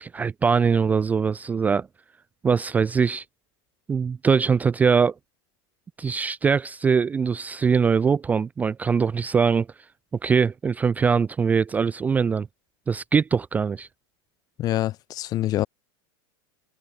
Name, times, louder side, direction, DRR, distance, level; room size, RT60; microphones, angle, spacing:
voice 1, 0.0-1.9 2.4-3.2 3.9-5.1 6.0-9.7 10.2-12.5 12.9-13.9, right 6 dB, 10° right, 0.4 m, -22 dB
voice 2, 14.6-15.7, left 14 dB, 30° left, 0.7 m, -25 dB
supercardioid pair, 155°, 13 cm